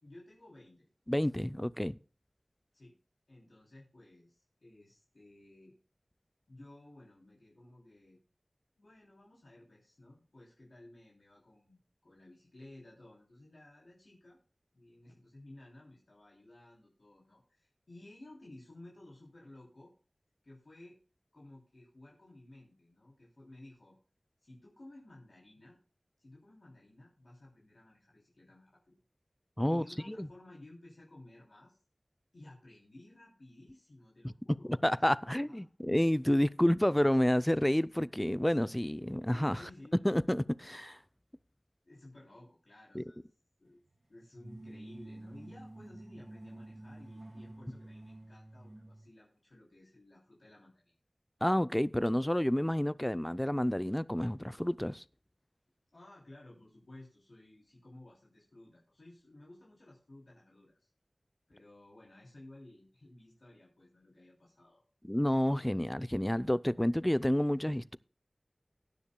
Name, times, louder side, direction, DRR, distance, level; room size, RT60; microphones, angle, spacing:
voice 1, 0.0-0.9 2.7-3.0 3.3-5.8 6.5-8.2 8.8-14.4 14.7-19.9 20.4-21.0 21.3-24.0 24.4-25.8 26.2-28.9 29.7-31.8 32.3-35.7 39.5-40.0 41.8-43.3 43.6-43.8 44.1-50.9 55.9-60.9 61.5-64.8, left 1 dB, 80° left, 3.1 m, -55 dB
voice 2, 1.1-2.0 29.6-30.3 34.8-39.6 40.0-41.0 42.9-43.0 51.4-55.0 65.0-68.0, equal, 15° left, 0.4 m, -29 dB
sound 1, 44.3-49.1, right 1 dB, 45° right, 2.0 m, -49 dB
19.0 x 10.0 x 2.2 m
wide cardioid pair, 40°, 0 cm